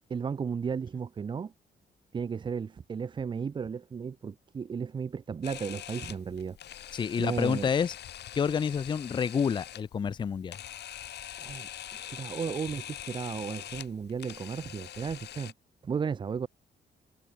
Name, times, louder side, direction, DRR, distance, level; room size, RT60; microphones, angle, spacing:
voice 1, 0.1-1.5 2.1-6.6 7.2-7.7 11.4-15.5 15.8-16.5, right 6 dB, 25° right, 0.6 m, -34 dB
Camera, 5.4-15.5, left 11 dB, 75° left, 2.8 m, -44 dB
voice 2, 6.9-7.9 8.3-10.6, left 7 dB, 25° left, 0.5 m, -28 dB
wide cardioid pair, 170°, 18 cm